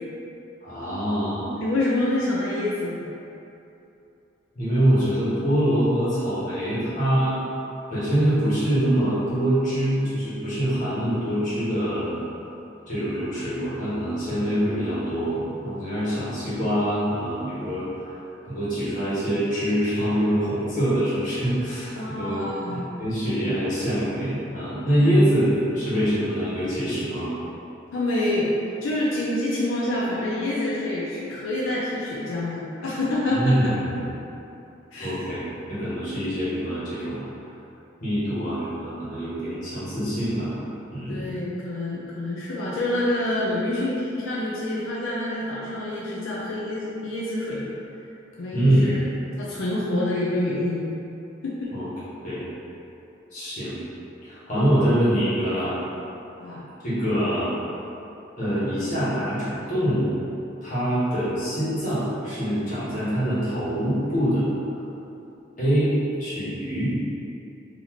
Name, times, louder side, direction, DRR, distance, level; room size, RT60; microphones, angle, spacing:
voice 1, 0.6-1.6 4.5-7.4 7.9-12.2 12.9-27.3 33.3-34.2 35.0-35.4 35.7-37.3 38.0-40.5 40.9-41.2 48.5-49.1 51.7-51.9 52.2-52.4 53.3-53.7 54.2-55.7 56.8-57.5 58.4-60.1 60.6-64.4 65.6-65.9 66.2-66.9, equal, 40° left, -11 dB, 1.4 m, -24 dB
voice 2, 1.6-3.0 16.0-16.2 21.9-22.9 24.9-25.2 27.9-28.5 28.8-33.7 34.9-35.1 41.1-47.7 48.4-49.0 49.4-50.9 51.4-51.7 56.4-56.6, left 1 dB, 90° left, -6 dB, 0.5 m, -27 dB
4.0 x 2.8 x 3.0 m, 2.8 s
head